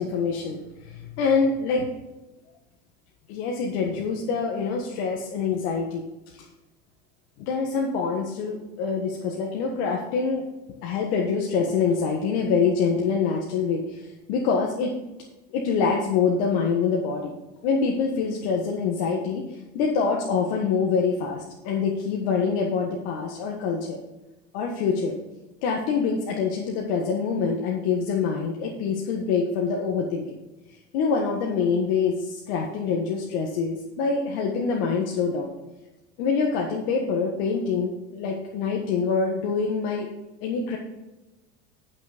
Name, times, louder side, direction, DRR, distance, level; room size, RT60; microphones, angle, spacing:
voice 1, 0.0-1.9 3.3-6.0 6.3-6.4 7.4-10.4 10.8-14.9 15.5-17.3 17.6-24.0 24.5-25.1 25.6-30.4 30.7-35.5 36.2-40.1 40.4-40.8, left 5 dB, 65° left, 0 dB, 1.6 m, -25 dB
10.5 x 6.3 x 5.1 m, 1.1 s
supercardioid pair, 125°, 33 cm